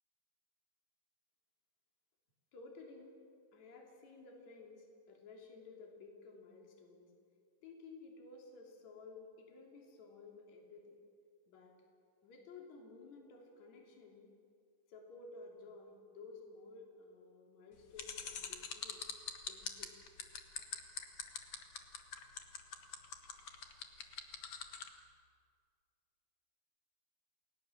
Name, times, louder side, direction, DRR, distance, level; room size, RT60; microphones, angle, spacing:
voice 1, 2.5-3.2 3.5-7.1 7.6-11.0 11.5-11.8 12.2-14.3 14.9-19.0 19.5-19.9, left 3 dB, 45° left, 1 dB, 4.1 m, -54 dB
sound 1, 18.0-24.9, left 8 dB, 70° left, 1.3 m, -43 dB
29.0 x 20.0 x 7.4 m, 2.3 s
omnidirectional pair, 4.9 m